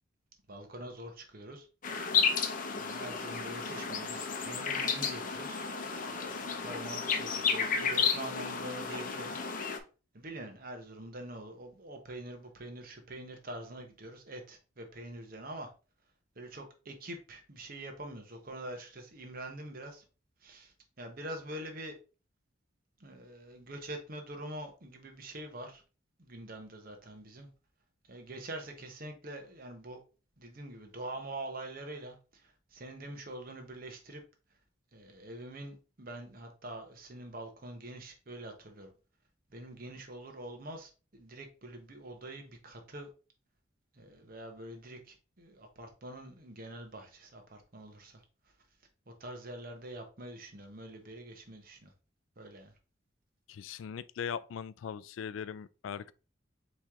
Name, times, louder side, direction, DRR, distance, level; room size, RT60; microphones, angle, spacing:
voice 1, 0.5-1.7 2.8-5.7 5.9-9.3 10.1-15.7 16.4-20.0 20.4-22.0 23.0-25.8 26.2-27.5 28.1-30.0 30.4-34.2 34.9-38.9 39.5-43.1 43.9-48.2 49.2-51.9 52.4-52.7, right 1 dB, 50° right, 1.0 m, -45 dB
sound 1, 1.8-9.8, left 6 dB, 45° left, 0.6 m, -32 dB
voice 2, 53.5-56.1, left 7 dB, 85° left, 0.3 m, -40 dB
4.5 x 3.1 x 3.5 m
head